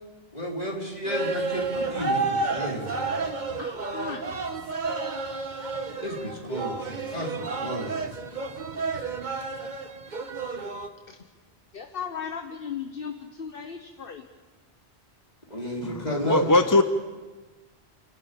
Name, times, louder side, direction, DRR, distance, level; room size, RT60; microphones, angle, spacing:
voice 1, 0.3-3.2 6.0-8.0 15.5-16.5, equal, 40° left, 4.2 m, -32 dB
sound 1, 1.0-10.9, right 3 dB, 50° right, 1.4 m, -31 dB
voice 2, 3.6-4.4 11.1-11.2 11.7-14.2, left 7 dB, 60° left, 1.2 m, -36 dB
voice 3, 15.8-16.8, left 2 dB, 20° left, 0.7 m, -21 dB
29.5 x 12.0 x 8.6 m
omnidirectional pair, 1.1 m